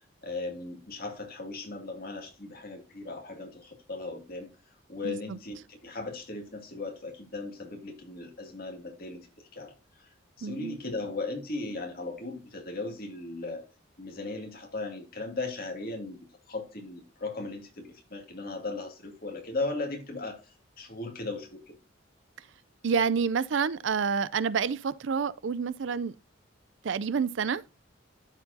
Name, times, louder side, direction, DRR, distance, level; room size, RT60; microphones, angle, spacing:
voice 1, 0.2-4.5 4.9-9.3 9.5-9.7 10.4-13.6 14.0-21.8, left 3 dB, 45° left, 2.4 m, -37 dB
voice 2, 5.0-5.4 10.4-10.8 22.4-22.5 22.8-26.2 26.8-27.6, right 6 dB, 65° right, 0.4 m, -28 dB
12.5 x 4.6 x 2.7 m
head